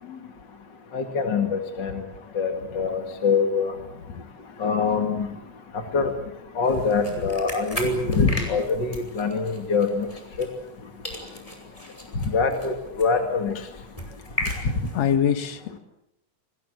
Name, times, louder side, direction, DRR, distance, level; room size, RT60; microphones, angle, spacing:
voice 1, 0.0-0.3 4.1-4.2 4.5-4.6 5.9-6.0 7.3-7.4 8.1-8.5 11.2-11.4 11.9-12.0 14.1-14.2 14.5-14.7 14.9-15.8, left 8 dB, 65° left, 2.8 m, -28 dB
voice 2, 0.9-2.0 2.3-3.7 4.6-5.3 5.9-6.1 6.6-10.1 10.4-10.5 12.2-13.6, left 4 dB, 40° left, 2.5 m, -24 dB
sound 1, 6.6-10.8 11.0-15.1, left 1 dB, 10° left, 5.7 m, -37 dB
29.5 x 22.5 x 7.8 m
omnidirectional pair, 3.4 m